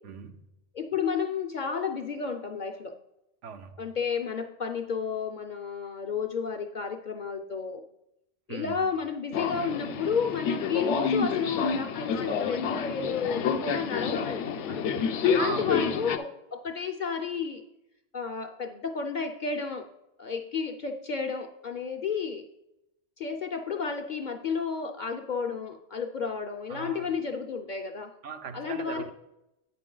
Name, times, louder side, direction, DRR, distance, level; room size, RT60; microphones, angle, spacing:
voice 1, 0.0-0.4 3.4-3.8 8.5-8.9 15.4-15.9 26.7-27.1 28.2-29.1, right 5 dB, 85° right, 8 dB, 1.0 m, -38 dB
voice 2, 0.7-2.9 3.8-7.8 8.5-17.6 18.1-19.9 20.2-22.4 23.2-28.1 28.5-29.1, left 5 dB, 55° left, 6 dB, 0.5 m, -32 dB
Subway metro underground, 9.3-16.2, left 6 dB, 75° left, 0.9 m, -29 dB
8.3 x 5.8 x 3.8 m, 0.89 s
omnidirectional pair, 1.2 m